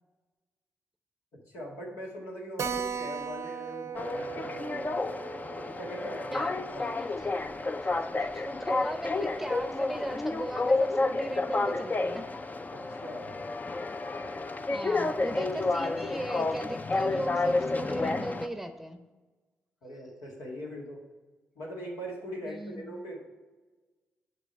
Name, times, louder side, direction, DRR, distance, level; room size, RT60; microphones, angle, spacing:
voice 1, 1.5-5.1 5.5-6.5 6.7-7.1 12.7-13.3 19.8-21.0 21.6-23.2, equal, 80° left, -2 dB, 1.8 m, -41 dB
Keyboard (musical), 2.6-7.6 7.9-8.0 8.3-8.4 8.7-8.8 9.3-9.7, right 7 dB, 65° right, 0.6 m, -39 dB
sound 1, 3.9-18.5, left 3 dB, 30° left, 0.6 m, -31 dB
voice 2, 6.8-7.1 8.2-12.3 14.7-19.0 22.5-22.9, right 1 dB, 5° right, 8 dB, 0.8 m, -37 dB
6.1 x 5.1 x 5.5 m, 1.3 s
hypercardioid pair, 40°, 5 cm